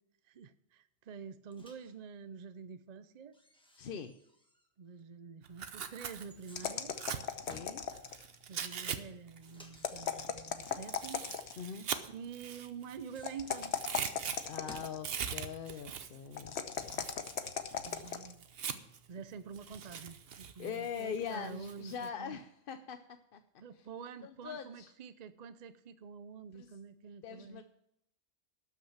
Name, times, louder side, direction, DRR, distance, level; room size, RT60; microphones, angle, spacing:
voice 1, 0.2-3.4 4.8-7.0 8.5-11.2 12.1-13.8 16.3-16.5 17.5-17.6 17.8-18.5 19.1-22.4 23.6-27.6, right 6 dB, 50° right, 12 dB, 0.6 m, -47 dB
Microwave oven, 1.5-2.0 3.3-4.7 5.0-5.1 6.2-7.8 9.4-10.9 12.8-15.0, equal, 5° left, 1.4 m, -58 dB
voice 2, 3.8-4.1 7.4-7.8 11.6-11.9 14.4-17.0 20.6-23.0 23.3-23.4 23.7-23.9 24.2-24.9 26.5-26.7 27.2-27.6, left 7 dB, 60° left, 8 dB, 0.8 m, -42 dB
Tearing, 5.4-9.0 9.3-13.2 13.5-19.1 19.5-22.1, right 7 dB, 65° right, 1.0 m, -42 dB
sound 1, 6.5-8.3 9.7-11.7 13.2-15.1 16.4-18.3, left 7 dB, 75° left, 1.1 m, -38 dB
12.5 x 6.2 x 7.2 m, 0.77 s
omnidirectional pair, 1.1 m